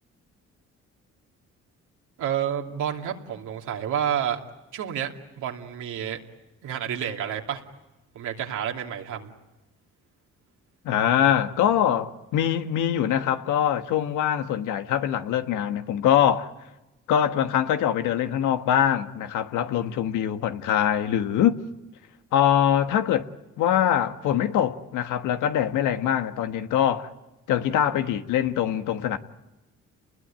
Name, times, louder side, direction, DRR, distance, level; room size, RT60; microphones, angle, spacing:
voice 1, 2.2-4.4 4.7-6.2 6.6-7.6 8.1-9.3, right 9 dB, 80° right, 2.8 m, -29 dB
voice 2, 10.8-16.5 17.1-21.6 22.3-23.3 23.6-27.1 27.5-29.2, left 10 dB, 90° left, 1.4 m, -23 dB
29.5 x 21.0 x 8.9 m
cardioid pair, 90°, 30 cm